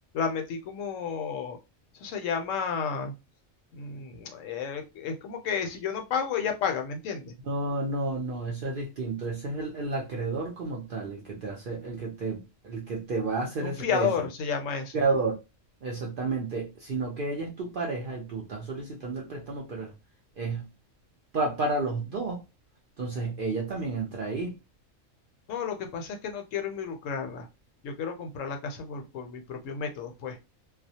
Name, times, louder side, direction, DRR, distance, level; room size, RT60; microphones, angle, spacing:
voice 1, 0.1-1.6 1.9-3.1 3.7-7.3 13.6-14.9 25.5-27.5 27.8-30.4, left 6 dB, 75° left, 0.9 m, -32 dB
voice 2, 7.5-14.1 14.9-15.3 15.8-19.9 20.4-20.7 21.3-22.4 23.0-24.5, right 3 dB, 60° right, 0.6 m, -31 dB
2.3 x 2.0 x 2.7 m
omnidirectional pair, 1.4 m